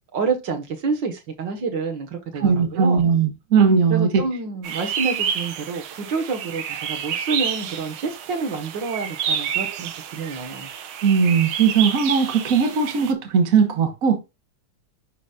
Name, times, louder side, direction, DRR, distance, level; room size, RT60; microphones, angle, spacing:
voice 1, 0.1-3.0 3.9-10.7, right 4 dB, 65° right, 2.0 m, -28 dB
voice 2, 2.4-4.2 11.0-14.2, right 6 dB, 50° right, 1.5 m, -19 dB
sound 1, 4.6-13.1, right 8 dB, 90° right, 1.7 m, -29 dB
11.0 x 4.0 x 2.4 m
omnidirectional pair, 2.2 m